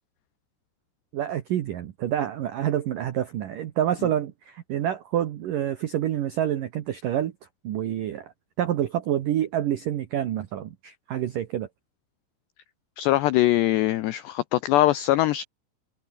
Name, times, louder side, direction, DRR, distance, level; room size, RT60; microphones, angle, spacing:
voice 1, 1.1-7.3 7.6-8.3 8.6-11.7, right 11 dB, 85° right, 1.9 m, -27 dB
voice 2, 13.0-15.4, left 15 dB, 80° left, 2.5 m, -22 dB
omnidirectional pair, 5.9 m